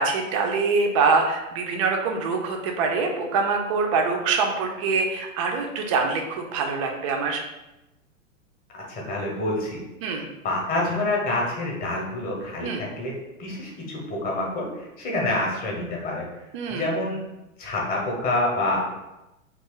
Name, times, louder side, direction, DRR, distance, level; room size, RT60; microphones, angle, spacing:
voice 1, 0.0-7.4 10.0-10.2 12.6-12.8 16.5-16.9, right 4 dB, 25° right, 3 dB, 0.3 m, -24 dB
voice 2, 8.7-9.8 10.1-13.1 13.4-16.2 16.7-17.2 17.6-19.0, left 2 dB, 20° left, -2 dB, 0.8 m, -27 dB
2.7 x 2.3 x 3.7 m, 0.97 s
figure-of-eight pair, 100°, 41 cm